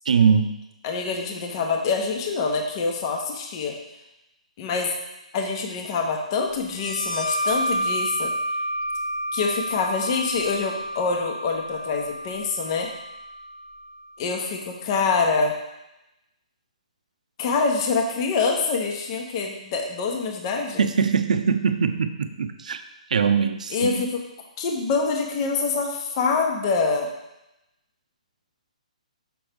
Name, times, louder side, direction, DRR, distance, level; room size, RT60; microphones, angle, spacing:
voice 1, 0.1-0.6 20.8-22.8 23.1-24.0, right 6 dB, 70° right, 9 dB, 0.6 m, -22 dB
voice 2, 0.8-3.7 4.6-4.9 5.3-8.3 9.3-12.9 14.2-15.5 17.4-20.9 23.7-24.2 24.6-27.1, left 4 dB, 40° left, 2 dB, 1.0 m, -25 dB
sound 1, 6.7-14.0, equal, 70° left, 1.4 m, -30 dB
6.1 x 6.0 x 3.5 m, 0.92 s
hypercardioid pair, 140°, 4 cm